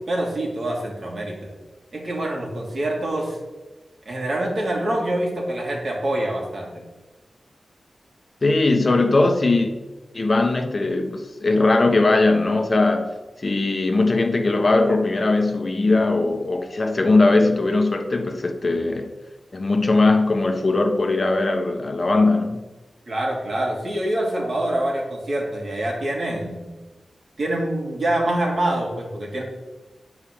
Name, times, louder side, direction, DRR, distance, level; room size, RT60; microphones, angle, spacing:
voice 1, 0.1-1.5 1.9-3.4 4.0-6.8 23.1-26.7 27.4-29.4, right 1 dB, 60° right, 2.9 m, -25 dB
voice 2, 8.4-9.7 10.1-13.1 13.4-19.1 19.5-22.6, left 2 dB, 45° left, 1.1 m, -19 dB
9.6 x 4.9 x 7.2 m
wide cardioid pair, 90°, 0 cm